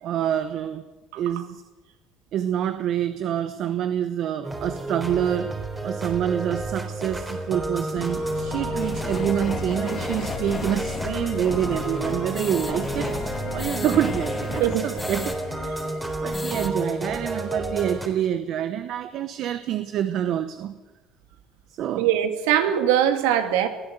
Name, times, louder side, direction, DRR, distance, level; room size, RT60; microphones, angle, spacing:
voice 1, 0.0-0.8 1.1-1.6 2.3-5.5 5.8-13.1 13.5-15.9 16.2-20.8 21.7-22.1, right 10 dB, 55° right, 11 dB, 1.1 m, -27 dB
voice 2, 1.1-1.4 14.6-14.9 22.0-23.7, right 10 dB, 90° right, 7 dB, 2.4 m, -22 dB
sound 1, 4.4-18.1, right 2 dB, 15° right, 3.7 m, -31 dB
sound 2, 8.0-17.0, left 12 dB, 60° left, 1.3 m, -37 dB
sound 3, 8.8-15.4 15.7-15.8 16.1-16.7, left 3 dB, 20° left, 2.2 m, -35 dB
22.0 x 15.5 x 8.1 m, 1.2 s
supercardioid pair, 105°, 0 cm